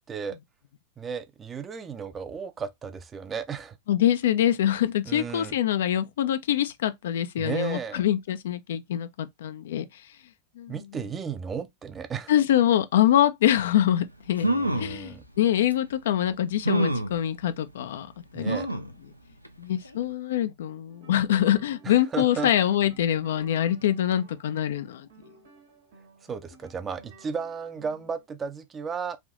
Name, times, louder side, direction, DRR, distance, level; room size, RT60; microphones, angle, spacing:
voice 1, 1.0-3.8 5.0-5.6 7.4-8.0 10.7-12.3 14.4-15.2 18.3-18.7 21.8-22.5 26.3-29.2, right 6 dB, 20° right, 0.4 m, -34 dB
voice 2, 3.9-10.0 10.6-10.8 12.3-14.5 14.7-18.1 18.3-18.6 19.6-25.1, left 11 dB, 60° left, 0.3 m, -24 dB
sound 1, 14.0-14.1 14.4-15.0 15.7-15.8 16.6-17.2 18.5-18.9 19.4-19.5 19.8-19.9, right 1 dB, 90° right, 0.4 m, -26 dB
sound 2, 20.8-28.2, right 4 dB, 60° right, 1.3 m, -55 dB
3.4 x 2.6 x 2.4 m
figure-of-eight pair, 90°, 0 cm